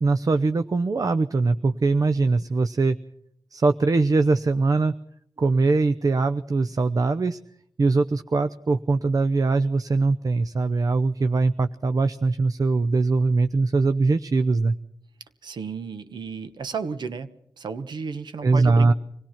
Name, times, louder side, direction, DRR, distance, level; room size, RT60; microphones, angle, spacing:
voice 1, 0.0-3.0 3.5-4.9 5.4-7.4 7.8-14.8 18.4-18.9, right 3 dB, 55° right, 10 dB, 0.8 m, -21 dB
voice 2, 15.4-17.3 17.6-18.9, right 5 dB, 80° right, 11 dB, 1.3 m, -33 dB
25.5 x 17.5 x 5.9 m, 0.73 s
cardioid pair, 50°, 7 cm